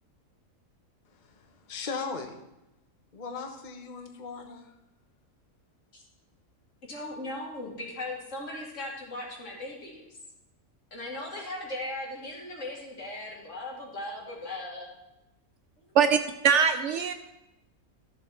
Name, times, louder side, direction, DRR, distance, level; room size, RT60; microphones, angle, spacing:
voice 1, 1.2-2.4 3.1-4.7, left 4 dB, 35° left, 4 dB, 1.1 m, -38 dB
voice 2, 6.9-10.1 10.9-14.9 15.8-15.9, left 1 dB, 55° left, -1 dB, 2.5 m, -38 dB
voice 3, 15.9-17.1, right 7 dB, 65° right, 8 dB, 0.8 m, -22 dB
13.0 x 7.2 x 4.4 m, 0.92 s
omnidirectional pair, 1.5 m